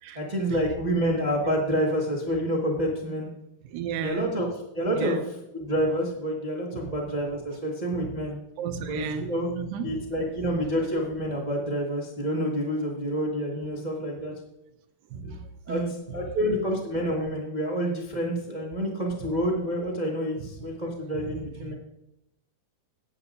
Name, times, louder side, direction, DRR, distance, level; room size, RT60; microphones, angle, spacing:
voice 1, 0.1-3.3 4.0-4.5 4.7-5.2 5.5-8.4 8.9-9.5 9.8-14.3 15.2-15.4 15.7-15.8 16.1-21.7, equal, 40° right, -2 dB, 0.6 m, -28 dB
voice 2, 3.6-4.3 5.0-5.3 6.7-6.9 8.0-8.1 8.6-10.6 15.1-16.2 20.4-20.5 21.1-21.7, right 7 dB, 80° right, 7 dB, 2.5 m, -35 dB
15.5 x 10.0 x 2.6 m, 0.84 s
omnidirectional pair, 4.1 m